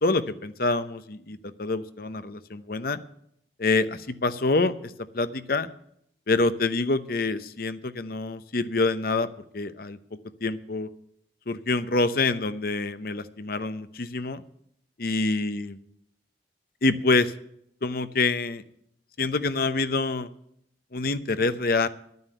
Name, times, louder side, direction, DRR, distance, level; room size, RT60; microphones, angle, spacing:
voice 1, 0.0-3.0 3.6-5.7 6.3-9.3 9.5-10.0 10.4-10.9 11.5-14.4 15.0-15.8 16.8-17.3 17.8-18.6 19.2-20.3 20.9-21.9, left 3 dB, 55° left, 11 dB, 0.8 m, -26 dB
11.0 x 9.5 x 7.8 m, 0.71 s
head